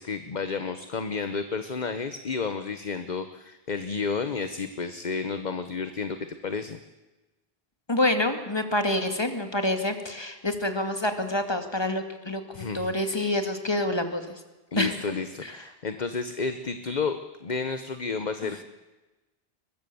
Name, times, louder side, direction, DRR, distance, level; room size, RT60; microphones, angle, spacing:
voice 1, 0.0-6.2 6.4-6.8 12.5-13.3 14.7-18.6, left 4 dB, 45° left, 9 dB, 1.1 m, -31 dB
voice 2, 7.9-14.3 14.7-15.1 15.4-15.5 18.4-18.5, left 1 dB, 25° left, 6 dB, 2.3 m, -27 dB
22.0 x 21.5 x 7.0 m, 1.1 s
omnidirectional pair, 1.1 m